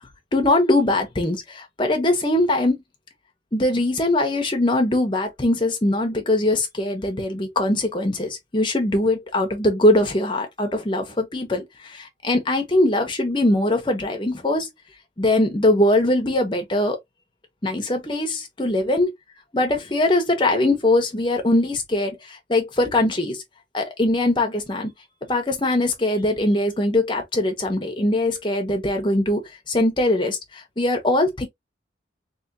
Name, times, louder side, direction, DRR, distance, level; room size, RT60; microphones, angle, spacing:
voice 1, 0.3-2.7 3.5-14.7 15.2-17.0 17.6-19.1 19.5-23.4 23.7-24.9 25.3-31.5, left 1 dB, 25° left, 1.0 m, -21 dB
3.5 x 3.1 x 2.8 m
head